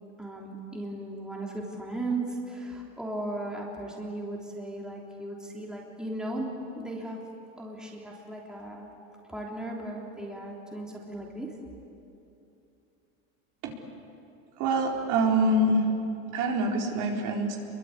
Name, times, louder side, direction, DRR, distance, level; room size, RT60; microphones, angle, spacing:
voice 1, 0.2-6.5 6.7-7.2 7.6-8.9 9.3-11.5, right 2 dB, ahead, -3 dB, 3.3 m, -36 dB
voice 2, 14.6-15.9 16.3-17.6, right 1 dB, 55° right, 0 dB, 4.3 m, -25 dB
28.0 x 23.5 x 8.5 m, 2.8 s
supercardioid pair, 145°, 37 cm